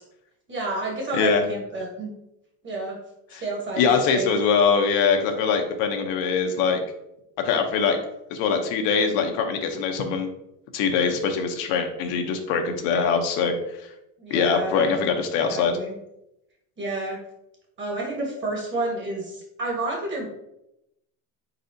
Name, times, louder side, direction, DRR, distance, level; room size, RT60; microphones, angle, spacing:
voice 1, 0.5-2.1 2.6-3.0 3.4-3.8 4.1-4.3 14.2-15.0 15.4-15.9 16.8-17.2 17.8-20.3, right 2 dB, 25° right, -1 dB, 1.3 m, -30 dB
voice 2, 3.8-6.8 7.4-8.0 8.3-10.3 10.7-13.5 14.3-15.7, left 5 dB, 75° left, 4 dB, 0.8 m, -22 dB
4.1 x 4.0 x 2.6 m, 0.85 s
cardioid pair, 140°, 45 cm